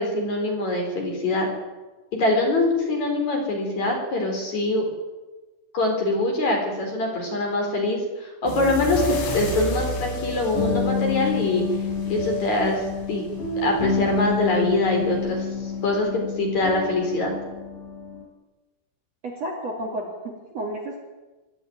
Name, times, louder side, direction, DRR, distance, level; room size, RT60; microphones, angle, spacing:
voice 1, 0.0-1.5 2.2-4.8 5.7-11.6 12.1-13.2 13.6-16.1 16.4-17.3, left 2 dB, 40° left, 1 dB, 4.9 m, -24 dB
sound 1, 8.5-18.2, left 3 dB, 75° left, 5.7 m, -28 dB
voice 2, 19.2-21.0, right 1 dB, 40° right, -1 dB, 3.2 m, -31 dB
24.0 x 11.5 x 9.3 m, 1.2 s
omnidirectional pair, 5.4 m